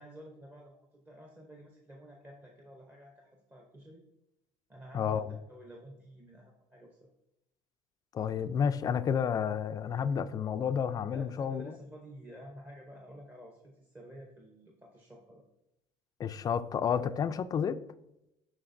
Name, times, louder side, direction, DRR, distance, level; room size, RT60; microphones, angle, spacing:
voice 1, 0.0-4.0 4.7-7.1 11.1-15.4, right 1 dB, 15° right, 0.8 m, -51 dB
voice 2, 4.9-5.3 8.1-11.8 16.2-17.8, left 7 dB, 30° left, 0.3 m, -30 dB
10.5 x 4.0 x 2.6 m
cardioid pair, 140°, 12 cm